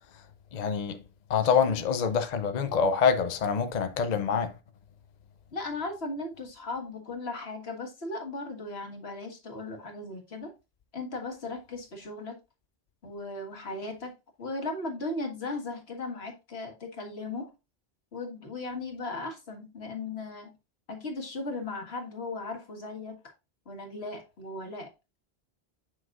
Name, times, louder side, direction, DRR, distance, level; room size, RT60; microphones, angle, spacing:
voice 1, 0.5-1.0 1.3-4.5, left 6 dB, 50° left, 0.7 m, -26 dB
voice 2, 1.3-1.8 5.5-10.5 10.9-12.4 13.0-14.1 14.4-17.5 18.1-20.5 20.9-23.3 23.6-24.9, left 2 dB, 80° left, 1.8 m, -37 dB
7.5 x 5.8 x 2.5 m
omnidirectional pair, 1.1 m